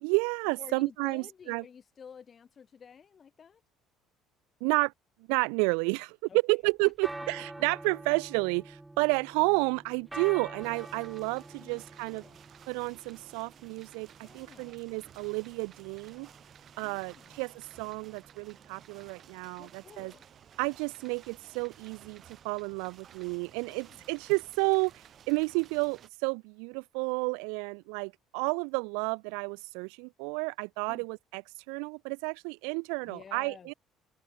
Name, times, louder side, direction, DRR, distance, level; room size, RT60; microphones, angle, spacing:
voice 1, 0.0-1.6 4.6-4.9 5.3-6.2 6.5-12.2 12.7-14.1 14.3-16.3 16.8-20.1 20.6-24.9 25.3-31.4 31.7-33.7, right 40 dB or more, 85° right, 0.6 m, -31 dB
voice 2, 0.6-3.6 6.3-6.6 6.8-6.9 7.2-7.6 11.6-12.4 14.2-14.8 16.8-17.4 19.6-20.3 23.7-24.1 30.9-31.1 33.0-33.7, left 7 dB, 40° left, 4.0 m, -52 dB
sound 1, 6.9-25.7, right 2 dB, 10° right, 1.2 m, -49 dB
sound 2, 10.6-26.1, right 9 dB, 50° right, 7.4 m, -55 dB
open air
supercardioid pair, 90°, 0 cm